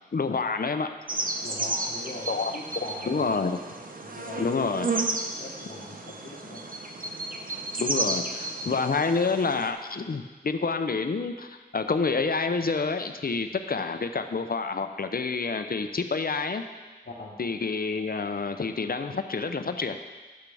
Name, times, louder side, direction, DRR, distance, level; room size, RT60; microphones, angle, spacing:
voice 1, 0.1-1.0 2.3-2.6 3.1-3.6 4.4-4.9 7.8-16.7 17.4-20.0, left 4 dB, 60° left, 8 dB, 0.6 m, -28 dB
sound 1, 1.1-9.7, right 2 dB, 55° right, 0.8 m, -33 dB
voice 2, 1.4-3.3 4.0-4.8 5.4-6.6 7.9-8.3 17.1-17.4, left 2 dB, 80° left, -5 dB, 1.0 m, -41 dB
10.5 x 8.3 x 3.4 m, 1.3 s
wide cardioid pair, 45°, 17 cm